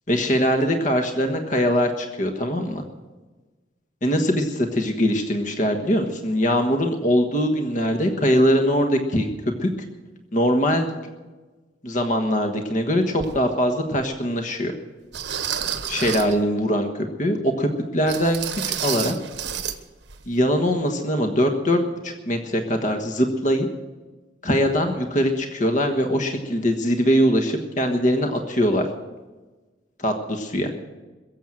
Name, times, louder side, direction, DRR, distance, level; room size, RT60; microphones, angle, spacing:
voice 1, 0.1-2.8 4.0-9.3 9.6-9.7 10.3-10.9 11.8-14.7 15.9-19.2 20.3-23.7 24.4-28.9 30.0-30.7, equal, 45° left, 4 dB, 1.4 m, -22 dB
sound 1, 13.2-13.3 14.0-14.1 15.1-16.4 18.1-19.8 20.1-20.2 20.7-20.8, right 8 dB, 70° right, 1.2 m, -29 dB
22.5 x 7.5 x 7.8 m, 1.2 s
head